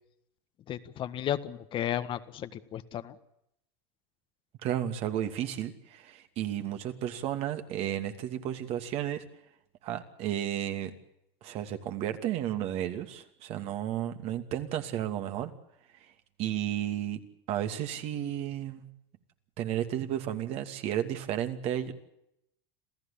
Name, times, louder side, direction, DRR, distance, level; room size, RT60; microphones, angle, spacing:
voice 1, 0.7-3.2, left 11 dB, 40° left, 11 dB, 1.5 m, -34 dB
voice 2, 4.6-9.2 9.8-10.9 11.4-15.5 16.0-16.1 16.4-17.2 17.5-18.9 19.6-21.9, right 11 dB, 50° right, 7 dB, 2.6 m, -33 dB
27.5 x 15.0 x 8.6 m, 0.81 s
hypercardioid pair, 105°, 13 cm